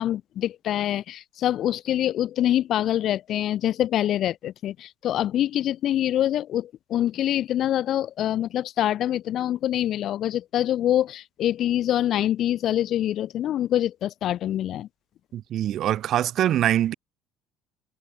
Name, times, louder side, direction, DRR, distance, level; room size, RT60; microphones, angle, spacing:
voice 1, 0.0-14.9, left 12 dB, 55° left, 0.5 m, -25 dB
voice 2, 15.3-16.9, right 11 dB, 55° right, 3.9 m, -23 dB
supercardioid pair, 105°, 0 cm